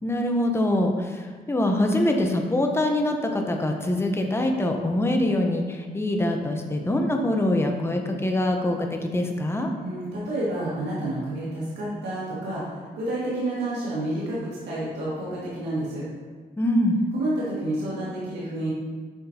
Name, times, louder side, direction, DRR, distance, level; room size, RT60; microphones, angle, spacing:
voice 1, 0.0-9.7 16.6-17.0, left 1 dB, 15° left, 2 dB, 0.9 m, -24 dB
voice 2, 9.8-16.0 17.1-18.7, right 1 dB, 90° right, -8 dB, 2.0 m, -29 dB
7.9 x 5.8 x 2.9 m, 1.5 s
cardioid pair, 80°, 17 cm